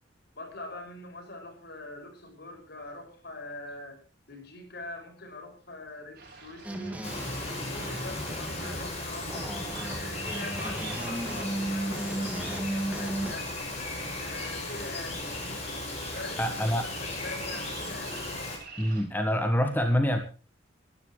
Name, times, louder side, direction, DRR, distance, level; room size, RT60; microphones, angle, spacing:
voice 1, 0.4-4.0 4.3-7.0 7.3-9.6 9.9-13.5 14.2-15.7 16.1-18.2, left 2 dB, 60° left, 5 dB, 6.2 m, -43 dB
sound 1, 6.1-19.0, right 4 dB, 55° right, 6.4 m, -48 dB
sound 2, 6.6-13.3, right 1 dB, 10° right, 2.0 m, -35 dB
Bird vocalization bird call bird song, 7.0-18.6, left 2 dB, 35° left, 7.1 m, -36 dB
voice 2, 16.4-16.9 18.8-20.2, equal, 10° left, 5 dB, 1.5 m, -26 dB
23.0 x 13.0 x 3.2 m, 0.35 s
head